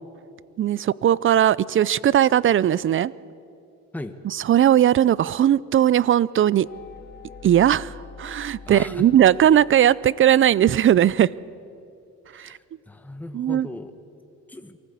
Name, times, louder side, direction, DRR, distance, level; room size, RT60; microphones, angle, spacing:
voice 1, 0.6-3.1 4.5-6.7 7.4-7.9 8.2-11.3 12.4-12.5 13.3-13.7, right 10 dB, 45° right, 22 dB, 0.5 m, -18 dB
sound 1, 6.6-10.4, left 5 dB, 35° left, 2.1 m, -44 dB
voice 2, 8.6-9.1 12.3-13.9 14.5-14.8, left 2 dB, 5° left, 8 dB, 1.2 m, -37 dB
23.0 x 14.5 x 8.4 m, 2.6 s
cardioid pair, 90°, 30 cm